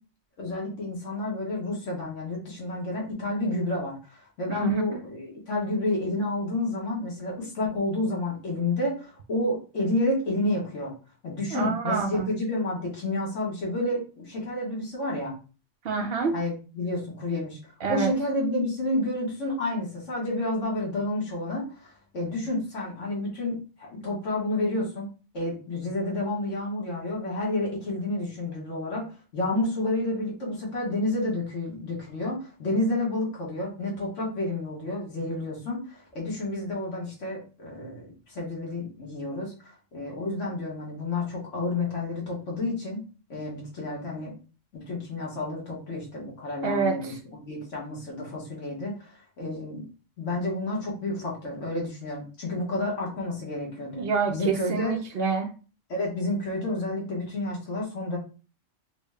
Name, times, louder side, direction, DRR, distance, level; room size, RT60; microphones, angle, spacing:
voice 1, 0.4-10.9 11.2-15.4 16.3-17.6 17.9-25.1 25.3-29.0 29.3-43.0 43.3-44.3 44.7-49.8 50.2-55.0 55.9-58.2, left 2 dB, 85° left, -3 dB, 1.7 m, -30 dB
voice 2, 4.5-4.8 11.5-12.3 15.8-16.4 17.8-18.1 46.6-47.2 54.0-55.5, right 5 dB, 60° right, 5 dB, 0.7 m, -27 dB
3.8 x 2.1 x 3.5 m, 0.35 s
omnidirectional pair, 1.2 m